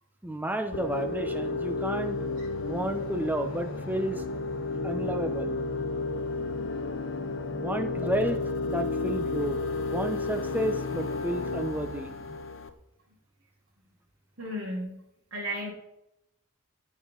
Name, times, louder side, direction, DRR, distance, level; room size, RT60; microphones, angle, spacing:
voice 1, 0.2-2.2 2.7-4.2 4.8-5.6 7.5-8.4 8.6-12.1, right 1 dB, 10° right, 7 dB, 0.9 m, -31 dB
sound 1, 0.7-12.7, left 3 dB, 75° left, 1.0 m, -32 dB
sound 2, 2.1-12.4, equal, 40° right, 3.3 m, -47 dB
voice 2, 14.4-15.0 15.3-15.7, equal, 90° right, -6 dB, 3.5 m, -34 dB
17.0 x 6.4 x 4.0 m, 0.83 s
head